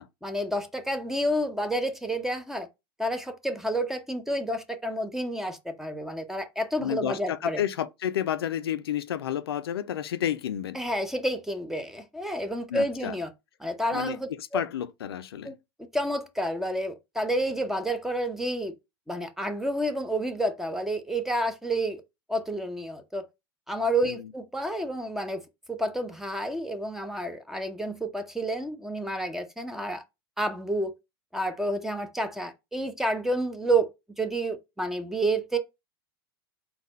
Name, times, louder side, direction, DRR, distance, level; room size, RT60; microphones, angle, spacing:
voice 1, 0.2-2.7 3.0-7.6 10.7-13.3 13.6-14.6 15.4-15.5 15.9-18.7 19.1-22.0 22.3-23.3 23.7-25.4 25.7-30.0 30.4-30.9 31.3-33.9 34.2-35.6, right 1 dB, 5° right, 0.7 m, -29 dB
voice 2, 6.8-10.8 12.7-13.2 13.9-15.5 24.0-24.3, left 10 dB, 80° left, 0.4 m, -31 dB
4.1 x 2.3 x 4.1 m
hypercardioid pair, 95°, 13 cm